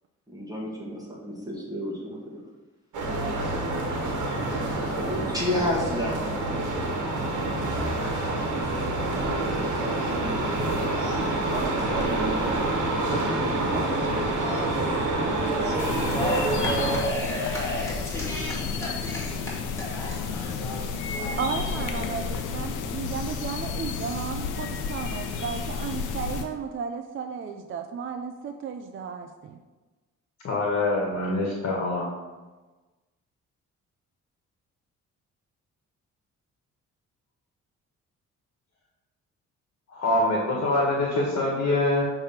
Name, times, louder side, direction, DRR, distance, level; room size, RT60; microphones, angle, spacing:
voice 1, 0.3-2.2 4.8-6.8 7.5-8.0 8.5-10.4 11.5-13.2 13.6-14.3, left 1 dB, 10° right, -4 dB, 1.9 m, -33 dB
sound 1, 2.9-17.0, right 2 dB, 75° right, 1.4 m, -27 dB
sound 2, 9.1-22.4, equal, 10° left, 2.3 m, -34 dB
sound 3, 15.8-26.4, left 5 dB, 90° left, 0.8 m, -32 dB
voice 2, 21.4-29.6, right 6 dB, 45° right, 6 dB, 0.5 m, -34 dB
voice 3, 30.4-32.1 39.9-42.0, left 2 dB, 55° left, -2 dB, 1.5 m, -24 dB
7.0 x 3.4 x 5.7 m, 1.2 s
cardioid pair, 90°, 30 cm